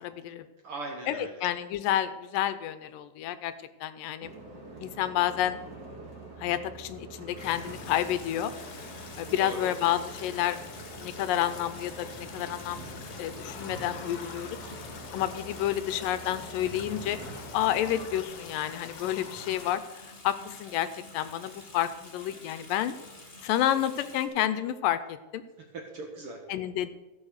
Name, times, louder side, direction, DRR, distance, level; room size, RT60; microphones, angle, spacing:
voice 1, 0.0-0.5 1.1-3.5 3.8-4.3 4.8-5.6 6.4-8.5 9.2-10.6 11.0-14.6 15.1-17.2 17.5-20.9 21.1-22.9 23.4-25.4 26.5-26.9, left 12 dB, 85° left, 12 dB, 2.3 m, -30 dB
voice 2, 0.6-1.4 9.3-9.7 25.6-26.4, right 3 dB, 55° right, 2 dB, 1.7 m, -39 dB
sound 1, 4.2-18.2, right 3 dB, 35° right, 1.8 m, -45 dB
Water tap faucet / Sink (filling or washing) / Bathtub (filling or washing), 7.3-24.3, left 2 dB, 30° left, 1.0 m, -49 dB
sound 2, 7.4-19.7, left 6 dB, 65° left, 2.0 m, -46 dB
14.5 x 7.1 x 6.4 m, 1.1 s
omnidirectional pair, 4.0 m